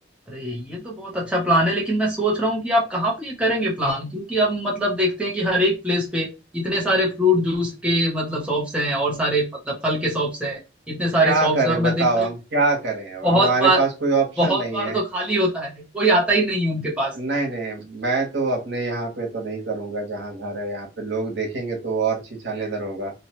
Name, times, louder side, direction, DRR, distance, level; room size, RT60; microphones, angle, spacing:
voice 1, 0.3-10.6 10.9-12.3 13.2-13.8 14.4-17.1, right 1 dB, 5° right, -4 dB, 0.7 m, -22 dB
voice 2, 11.2-15.0 17.1-23.1, right 3 dB, 90° right, 0 dB, 1.0 m, -25 dB
2.7 x 2.2 x 2.9 m, 0.27 s
head